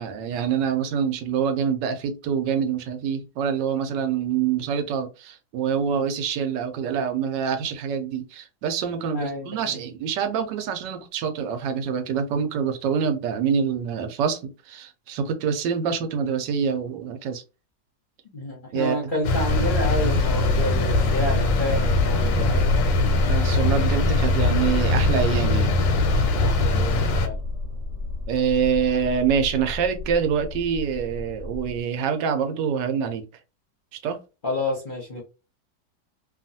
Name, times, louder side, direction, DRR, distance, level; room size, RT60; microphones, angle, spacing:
voice 1, 0.0-17.4 18.7-19.1 23.2-25.7 28.3-33.2 33.9-34.2, right 7 dB, 75° right, 1.2 m, -26 dB
voice 2, 9.1-9.7 18.3-22.9 26.4-27.4 34.4-35.2, left 1 dB, 40° left, 0.7 m, -30 dB
sound 1, 19.2-27.3, left 2 dB, 90° left, 1.3 m, -22 dB
sound 2, 19.5-31.8, left 2 dB, 45° right, 1.1 m, -28 dB
2.9 x 2.4 x 2.6 m
omnidirectional pair, 1.9 m